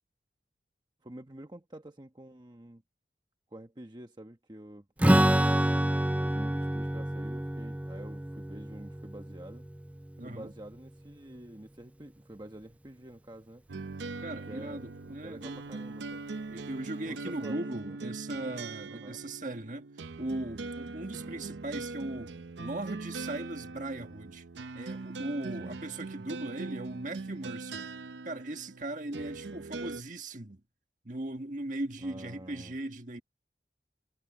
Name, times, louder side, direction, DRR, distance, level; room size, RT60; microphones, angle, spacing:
voice 1, 1.0-2.8 3.5-5.6 6.2-9.7 10.2-13.6 14.5-16.2 17.1-18.0 18.9-19.2 21.2-21.4 25.5-25.8 32.0-32.7, right 1 dB, 25° right, 1.1 m, -48 dB
Strum, 5.0-10.6, right 1 dB, 10° right, 0.4 m, -28 dB
voice 2, 5.0-5.3 10.2-10.5 14.2-15.6 16.5-19.9 20.2-24.4 24.7-27.9 28.2-30.6 31.0-33.2, right 1 dB, 45° right, 1.7 m, -38 dB
sound 1, 13.7-30.0, right 3 dB, 90° right, 0.6 m, -41 dB
head